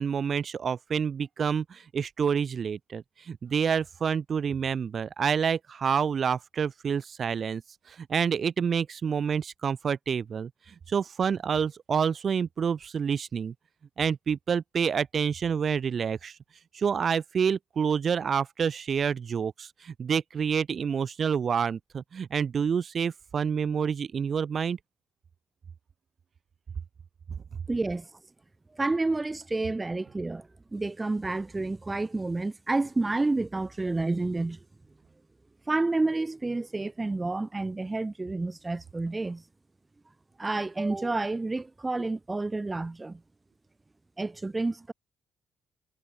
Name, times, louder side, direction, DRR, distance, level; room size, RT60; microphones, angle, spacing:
voice 1, 0.0-7.6 7.9-13.5 14.0-16.4 16.7-24.8, right 7 dB, 50° right, 0.4 m, -28 dB
voice 2, 27.7-28.1 28.8-34.6 35.7-39.4 40.4-43.2 44.2-44.9, right 2 dB, 20° right, 0.9 m, -29 dB
cardioid pair, 90°, 0 cm